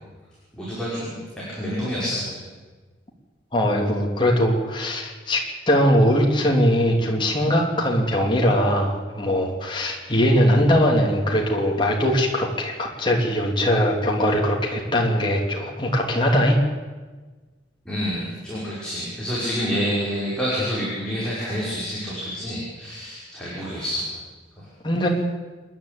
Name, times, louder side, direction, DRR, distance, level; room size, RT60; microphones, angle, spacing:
voice 1, 0.5-1.2 1.5-2.4 17.9-24.0 24.6-24.7, equal, 5° left, -8 dB, 5.7 m, -28 dB
voice 2, 3.5-5.4 5.7-16.6 24.8-25.1, equal, 25° left, 0 dB, 3.1 m, -21 dB
27.5 x 11.0 x 8.6 m, 1.3 s
head